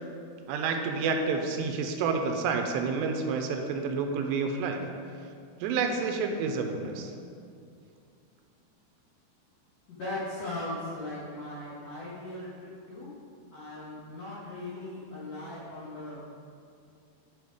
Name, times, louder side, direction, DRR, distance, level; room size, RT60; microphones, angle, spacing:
voice 1, 0.5-4.8 5.2-5.3 5.6-7.1, right 4 dB, 85° right, 4 dB, 2.7 m, -29 dB
voice 2, 9.9-13.1 13.5-16.3, left 1 dB, 70° left, -8 dB, 1.6 m, -38 dB
9.5 x 5.0 x 4.9 m, 2.4 s
omnidirectional pair, 5.1 m